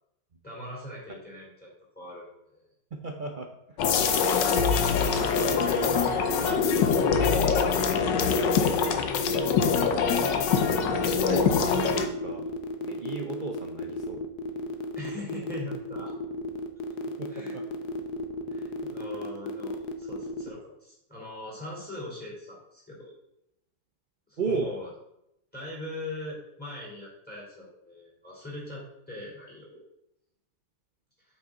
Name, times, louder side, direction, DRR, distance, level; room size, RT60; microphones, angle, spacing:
voice 1, 0.4-1.7 1.9-2.3 2.5-2.6 4.0-4.6 4.9-6.7 14.9-16.1 17.3-17.6 18.5-23.1 24.3-24.9 25.5-29.8, left 1 dB, 5° left, -4 dB, 3.3 m, -41 dB
voice 2, 2.9-3.5 4.0-4.1 5.7-6.2 10.9-12.5 12.8-14.2 17.2-17.6 24.4-24.7, right 4 dB, 70° right, 3 dB, 0.4 m, -35 dB
sound 1, 3.8-12.1, left 5 dB, 90° left, 1.5 m, -24 dB
sound 2, 11.1-20.5, left 2 dB, 70° left, 1.3 m, -34 dB
8.6 x 5.9 x 3.8 m, 0.81 s
omnidirectional pair, 1.9 m